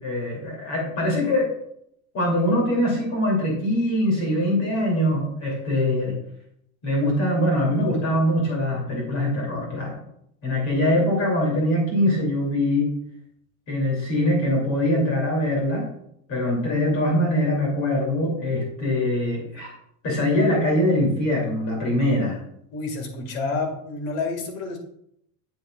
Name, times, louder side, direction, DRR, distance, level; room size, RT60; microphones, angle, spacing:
voice 1, 0.0-1.5 2.1-6.1 6.8-10.0 10.4-12.9 13.7-15.8 16.3-19.7 20.0-22.4, left 1 dB, 40° left, -2 dB, 2.7 m, -23 dB
voice 2, 22.7-24.8, left 3 dB, 85° left, 4 dB, 2.0 m, -29 dB
8.0 x 7.9 x 2.3 m, 0.73 s
cardioid pair, 170°, 39 cm